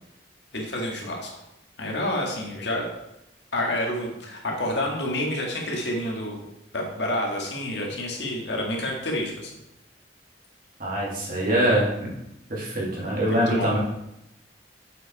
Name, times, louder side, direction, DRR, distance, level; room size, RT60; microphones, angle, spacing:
voice 1, 0.5-1.3 1.8-2.9 3.5-6.4 6.7-9.5 13.3-13.7, left 1 dB, 65° left, 0 dB, 1.9 m, -28 dB
voice 2, 10.8-11.9 12.5-13.8, right 1 dB, 50° right, -5 dB, 2.9 m, -23 dB
7.8 x 5.8 x 4.7 m, 0.86 s
head